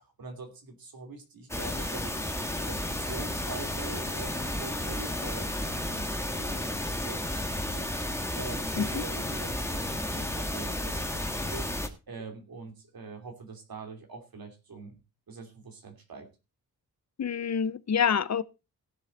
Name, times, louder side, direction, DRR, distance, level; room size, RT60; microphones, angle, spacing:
voice 1, 0.0-2.2 2.6-7.9 8.3-11.7 12.1-15.0 15.3-16.3, right 3 dB, 70° right, 2.9 m, -43 dB
sound 1, 1.5-11.9, left 1 dB, 5° left, 1.6 m, -32 dB
voice 2, 17.2-18.4, left 7 dB, 45° left, 0.7 m, -27 dB
17.0 x 7.6 x 4.1 m
wide cardioid pair, 140°, 37 cm